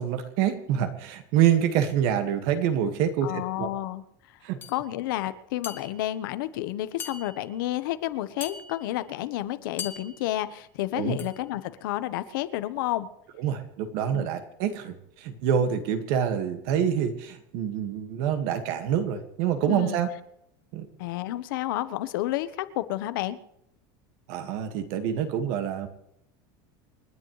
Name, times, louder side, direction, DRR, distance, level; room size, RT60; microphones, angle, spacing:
voice 1, 0.0-3.7 4.4-4.6 10.9-11.2 13.4-20.1 20.7-20.9 24.3-25.9, right 9 dB, 50° right, 8 dB, 2.0 m, -26 dB
voice 2, 3.2-4.0 4.7-13.1 14.1-14.3 19.6-20.0 21.0-23.4, left 14 dB, 70° left, 12 dB, 1.2 m, -30 dB
sound 1, 4.6-4.8 5.6-6.2 7.0-7.6 8.4-9.0 9.8-10.4 11.2-11.5, left 6 dB, 15° left, 1.1 m, -41 dB
28.5 x 10.5 x 3.3 m, 0.77 s
supercardioid pair, 180°, 11 cm